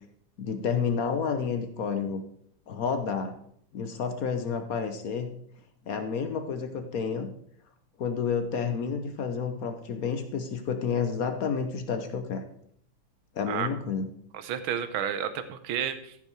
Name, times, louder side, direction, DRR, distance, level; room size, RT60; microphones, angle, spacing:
voice 1, 0.4-2.2 2.7-3.4 3.7-5.3 5.9-7.3 8.0-12.4 13.3-14.1, left 6 dB, 60° left, 7 dB, 1.0 m, -30 dB
voice 2, 14.3-16.2, right 9 dB, 75° right, 11 dB, 1.7 m, -31 dB
14.5 x 6.0 x 4.6 m, 0.67 s
omnidirectional pair, 2.3 m